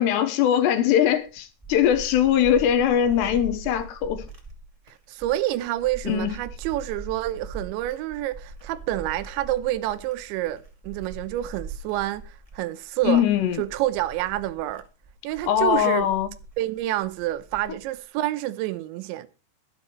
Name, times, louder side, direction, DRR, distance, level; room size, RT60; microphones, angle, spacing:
voice 1, 0.0-4.2 6.1-6.3 13.0-13.6 15.4-16.3, left 10 dB, 75° left, 3.1 m, -21 dB
sound 1, 1.1-18.0, right 3 dB, 15° right, 1.1 m, -42 dB
voice 2, 5.1-13.2 13.6-14.8 15.2-16.1 16.6-19.3, right 15 dB, 85° right, 3.1 m, -28 dB
22.5 x 8.2 x 3.1 m
omnidirectional pair, 5.2 m